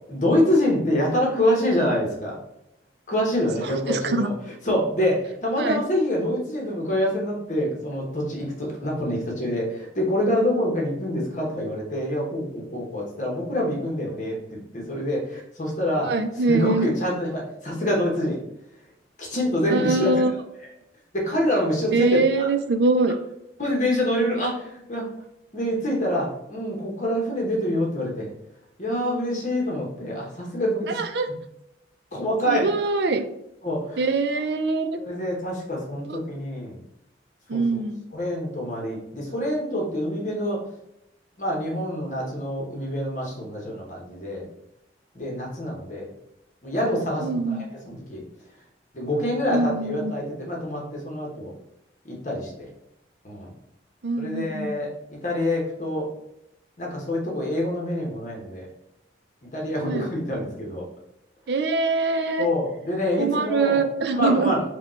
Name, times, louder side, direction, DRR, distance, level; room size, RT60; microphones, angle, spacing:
voice 1, 0.1-2.4 3.1-4.3 4.6-18.4 19.2-20.2 21.1-22.5 23.6-25.1 25.5-28.3 28.8-31.0 32.1-32.7 33.6-34.1 35.0-36.8 37.5-37.8 38.1-40.6 41.4-44.4 45.1-46.1 46.6-48.2 48.9-51.5 52.0-52.7 53.2-53.5 54.2-56.1 56.8-58.7 59.5-60.8 62.4-63.8 64.1-64.6, left 1 dB, 45° left, -1 dB, 1.0 m, -26 dB
voice 2, 3.9-4.3 5.6-5.8 16.0-16.9 19.7-20.3 21.9-23.2 30.9-31.3 32.5-33.2 34.0-35.0 36.1-36.2 37.5-38.0 47.2-47.6 49.5-50.1 54.0-54.7 59.8-60.1 61.5-62.5 63.2-64.5, right 3 dB, 70° right, 7 dB, 0.5 m, -23 dB
5.0 x 2.3 x 4.3 m, 0.82 s
head